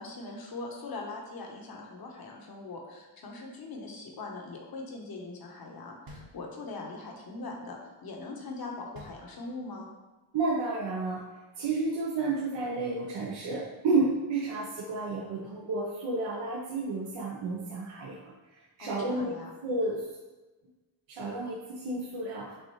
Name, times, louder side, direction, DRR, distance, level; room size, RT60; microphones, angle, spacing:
voice 1, 0.0-9.9 18.8-19.5, left 3 dB, 50° left, 0 dB, 1.1 m, -41 dB
sound 1, 6.1-7.0 8.9-9.9, equal, 50° right, 1.0 m, -50 dB
voice 2, 10.3-11.3 11.6-18.2 18.8-20.1 21.1-22.5, right 3 dB, 70° right, -3 dB, 0.8 m, -31 dB
6.6 x 2.5 x 3.1 m, 1.2 s
cardioid pair, 85°, 45 cm